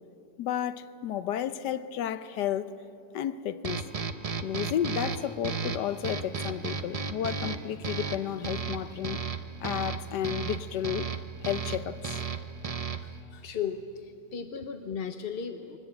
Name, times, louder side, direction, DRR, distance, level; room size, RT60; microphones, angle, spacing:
voice 1, 0.4-2.7 3.1-3.8 4.4-9.2 9.6-11.1 11.5-12.2, left 10 dB, 80° left, 1.3 m, -32 dB
sound 1, 3.6-13.2, right 5 dB, 45° right, 0.4 m, -35 dB
voice 2, 13.0-15.8, left 7 dB, 50° left, 0.7 m, -36 dB
23.0 x 19.0 x 8.8 m
omnidirectional pair, 1.8 m